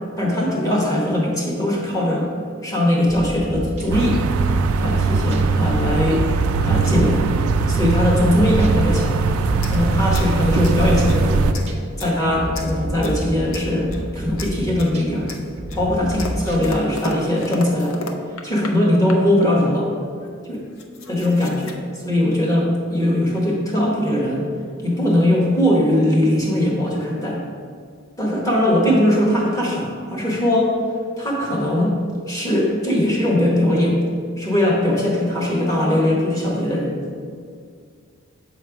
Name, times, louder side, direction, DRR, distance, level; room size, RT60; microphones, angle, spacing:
voice 1, 0.2-2.3 2.6-4.2 4.8-6.2 6.6-7.3 7.7-9.2 9.7-11.5 12.0-15.3 15.7-17.9 18.4-19.9 20.5-20.7 21.1-21.8 22.0-24.5 24.8-27.4 28.2-30.7 31.2-32.0 32.3-34.0 34.4-37.0, left 1 dB, 15° left, -3 dB, 1.1 m, -20 dB
sound 1, 3.1-8.8 9.2-11.9 12.3-15.2 15.6-16.8, right 1 dB, 30° right, 0.5 m, -30 dB
sound 2, 3.9-11.5, right 4 dB, 90° right, 0.4 m, -20 dB
sound 3, 9.6-11.2 11.5-12.2 12.5-13.2 13.5-14.1 14.4-15.0 15.3-18.8 19.1-19.5 20.2-20.3 20.5-21.7, left 3 dB, 70° left, 0.5 m, -35 dB
6.9 x 3.2 x 4.8 m, 2.1 s
head